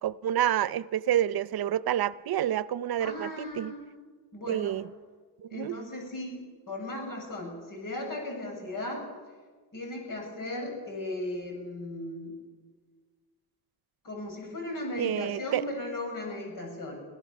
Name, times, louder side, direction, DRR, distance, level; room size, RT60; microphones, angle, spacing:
voice 1, 0.0-3.7 4.5-4.9 5.4-5.8 15.0-15.6, right 11 dB, 80° right, 18 dB, 0.7 m, -28 dB
voice 2, 3.0-3.8 4.3-4.7 5.5-9.0 9.7-12.3 14.0-17.0, left 1 dB, 60° left, 1 dB, 7.4 m, -36 dB
25.5 x 16.0 x 7.2 m, 1.5 s
cardioid pair, 115°, 36 cm